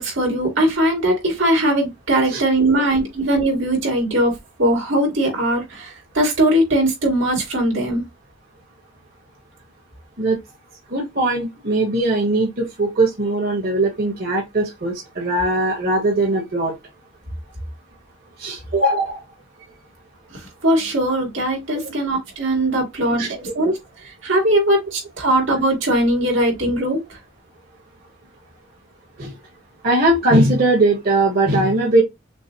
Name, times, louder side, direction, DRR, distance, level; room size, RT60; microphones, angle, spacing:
voice 1, 0.0-4.3 4.6-8.0 20.3-23.8 24.2-27.0, right 1 dB, 80° right, 2.7 m, -20 dB
voice 2, 10.9-16.7 18.4-19.2 21.8-21.9 23.2-23.3 29.2-29.3 29.8-32.0, right 2 dB, 50° right, 1.6 m, -19 dB
6.2 x 2.3 x 2.9 m
head